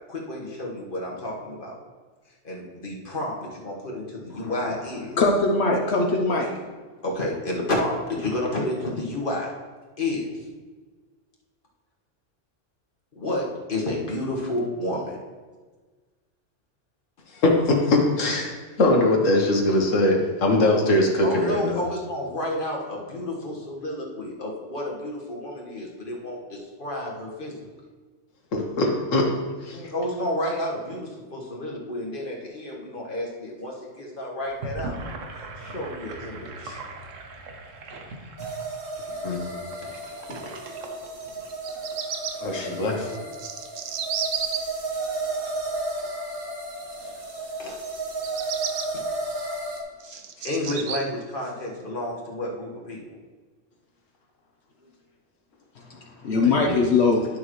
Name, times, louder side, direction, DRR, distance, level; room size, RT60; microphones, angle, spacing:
voice 1, 0.1-1.8 2.4-5.2 7.0-9.5 10.0-10.5 13.1-15.2 21.2-27.8 29.7-35.0 35.3-36.8 39.3-39.4 39.8-39.9 42.5-43.3 47.6-47.7 50.0-53.0, left 1 dB, 45° left, -2 dB, 1.6 m, -31 dB
voice 2, 5.2-6.5 55.9-57.3, left 3 dB, 60° left, 0 dB, 1.0 m, -21 dB
voice 3, 17.3-21.8 28.5-29.3 29.6-29.8 39.2-39.6 42.4-43.0 56.3-56.8, left 2 dB, 85° left, 1 dB, 1.5 m, -22 dB
Gurgling / Sink (filling or washing), 34.4-41.9, right 2 dB, 85° right, 1.3 m, -40 dB
sound 1, 38.4-49.8, right 2 dB, 50° right, 1.3 m, -33 dB
Bird vocalization bird call bird song, 41.5-42.3 43.1-44.6 48.1-48.9 49.5-51.0, right 8 dB, 65° right, 0.8 m, -31 dB
11.0 x 6.6 x 3.1 m, 1.4 s
omnidirectional pair, 1.3 m